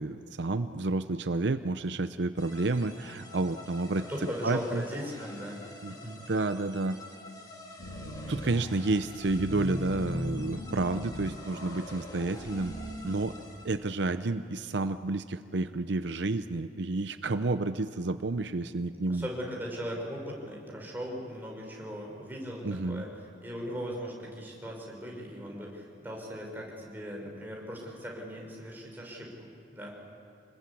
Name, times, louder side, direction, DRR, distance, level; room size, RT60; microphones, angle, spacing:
voice 1, 0.0-4.0 4.4-4.8 5.8-7.0 8.3-12.7 13.0-13.3 13.6-19.3 22.6-23.0, right 2 dB, 70° right, 10 dB, 0.7 m, -30 dB
sound 1, 2.4-14.0, left 1 dB, 20° left, 2.4 m, -49 dB
voice 2, 4.1-6.1 8.8-8.9 18.9-23.1 23.4-29.9, equal, 10° right, -1 dB, 5.4 m, -39 dB
sound 2, 7.8-8.6 9.0-13.0, left 1 dB, 80° left, 3.8 m, -38 dB
27.0 x 20.5 x 8.6 m, 2.7 s
head